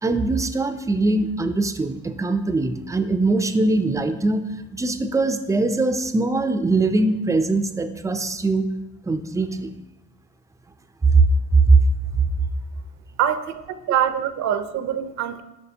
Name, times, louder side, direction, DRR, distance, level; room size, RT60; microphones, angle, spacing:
voice 1, 0.0-4.4 4.7-8.6 9.0-9.7 11.1-11.2 11.7-11.8, right 3 dB, 10° right, 9 dB, 0.4 m, -21 dB
voice 2, 13.2-15.4, right 9 dB, 65° right, 10 dB, 0.6 m, -24 dB
9.6 x 6.0 x 2.7 m, 0.99 s
cardioid pair, 120°, 30 cm